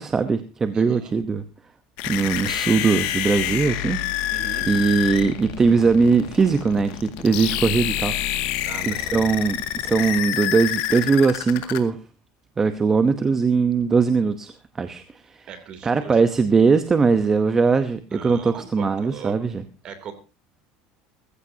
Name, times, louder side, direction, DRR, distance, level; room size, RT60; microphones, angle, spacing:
voice 1, 0.0-1.4 2.1-4.0 4.7-8.1 8.8-12.0 12.6-15.5 15.8-19.6, right 5 dB, 20° right, 10 dB, 0.9 m, -20 dB
voice 2, 0.7-1.1 4.3-4.7 8.6-9.2 15.5-16.2 18.1-19.3 19.8-20.1, right 7 dB, 40° right, 8 dB, 3.0 m, -39 dB
sound 1, 2.0-11.8, left 13 dB, 65° left, 2.0 m, -27 dB
20.0 x 15.0 x 2.8 m, 0.31 s
cardioid pair, 150°, 2 cm